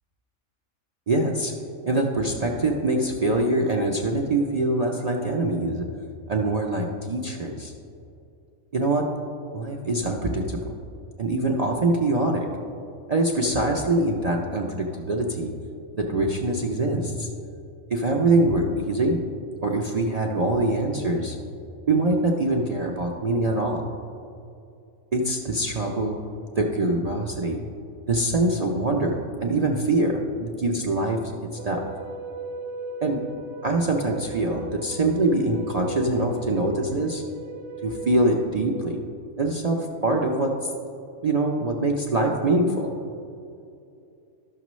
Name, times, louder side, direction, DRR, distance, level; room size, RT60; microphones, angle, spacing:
voice 1, 1.1-1.5 1.8-5.8 6.3-7.7 8.7-9.1 9.5-10.7 11.2-12.5 13.1-15.5 15.9-17.3 17.9-19.2 19.6-21.4 21.9-23.8 25.1-26.2 26.6-27.6 28.1-29.2 29.4-31.8 33.0-33.2 33.6-37.2 37.8-39.0 39.4-40.5 41.2-42.9, right 2 dB, 65° right, 0 dB, 0.4 m, -24 dB
sound 1, 31.6-38.5, right 3 dB, 85° right, 1.0 m, -38 dB
12.0 x 6.7 x 3.1 m, 2.6 s
omnidirectional pair, 1.5 m